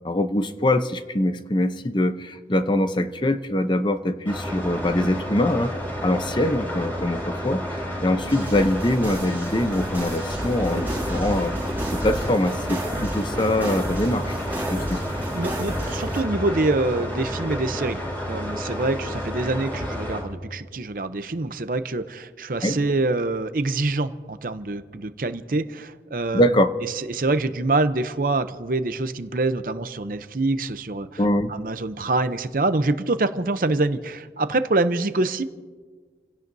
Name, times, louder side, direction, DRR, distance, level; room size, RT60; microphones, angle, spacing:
voice 1, 0.0-5.7 6.0-7.6 8.0-11.5 11.9-14.3 14.7-15.0 22.6-22.8 26.3-26.7 31.2-31.5, left 1 dB, 25° left, 9 dB, 0.7 m, -23 dB
sound 1, 4.3-20.2, equal, 10° left, 5.6 m, -31 dB
sound 2, 8.3-16.2, right 1 dB, 10° right, 4.3 m, -31 dB
voice 2, 15.3-26.5 26.9-31.2 31.5-35.4, right 2 dB, 50° right, 11 dB, 0.7 m, -25 dB
30.0 x 16.5 x 2.7 m, 1.5 s
head